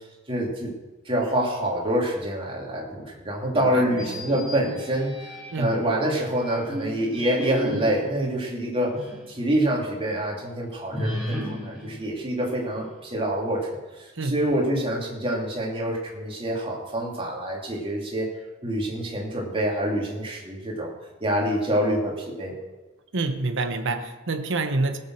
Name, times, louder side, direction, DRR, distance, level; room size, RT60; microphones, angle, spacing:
voice 1, 0.3-0.7 1.0-9.0 9.3-13.7 14.0-18.3 18.6-20.9 21.2-22.5, right 1 dB, 25° right, -3 dB, 3.0 m, -26 dB
voice 2, 3.5-4.2 5.5-5.8 14.1-14.4 23.1-25.0, right 3 dB, 60° right, 7 dB, 1.0 m, -27 dB
sound 1, 3.9-5.8 6.4-9.3 9.7-9.8 10.9-13.0, equal, ahead, 4.4 m, -34 dB
17.0 x 7.3 x 6.5 m, 1.2 s
head